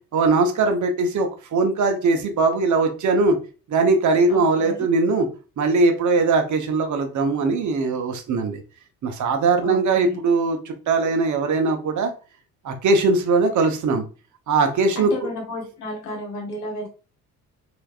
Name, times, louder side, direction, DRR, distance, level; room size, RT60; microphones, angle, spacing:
voice 1, 0.1-3.4 3.7-5.3 5.6-8.6 9.0-12.1 12.6-14.0 14.5-15.1, right 3 dB, 40° right, 5 dB, 0.9 m, -20 dB
voice 2, 4.3-4.8 9.6-10.2 14.9-16.9, left 1 dB, 85° left, 1 dB, 1.3 m, -33 dB
3.3 x 3.0 x 2.3 m, 0.35 s
hypercardioid pair, 55°, 44 cm